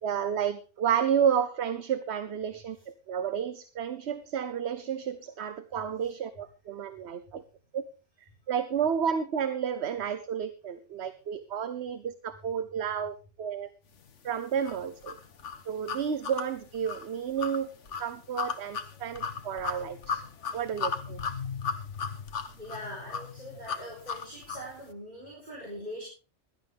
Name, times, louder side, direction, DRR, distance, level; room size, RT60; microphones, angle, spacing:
voice 1, 0.0-7.4 7.7-7.9 8.5-13.7 14.2-15.2 15.7-17.7 18.0-20.2 20.5-21.2, right 8 dB, 60° right, 11 dB, 1.0 m, -31 dB
sound 1, 14.6-24.7, left 6 dB, 70° left, 1.4 m, -36 dB
voice 2, 22.6-26.0, equal, 35° right, -2 dB, 4.2 m, -42 dB
16.5 x 12.0 x 3.5 m, 0.35 s
omnidirectional pair, 1.3 m